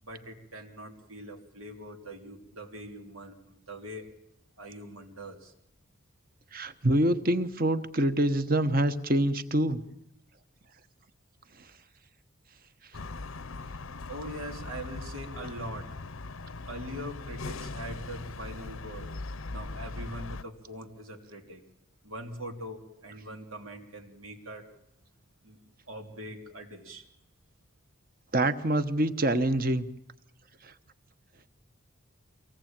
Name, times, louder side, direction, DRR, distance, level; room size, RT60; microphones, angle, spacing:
voice 1, 0.0-4.1 4.6-5.5 14.1-16.0 16.7-19.1 19.5-21.6 22.0-24.6 25.4-25.6 25.9-27.0, right 1 dB, 90° right, 2 dB, 3.2 m, -42 dB
voice 2, 6.5-9.8 28.3-29.9, right 1 dB, 45° right, 11 dB, 1.1 m, -25 dB
sound 1, 12.9-20.4, left 3 dB, 80° left, 0.8 m, -40 dB
24.0 x 18.0 x 8.9 m, 0.79 s
head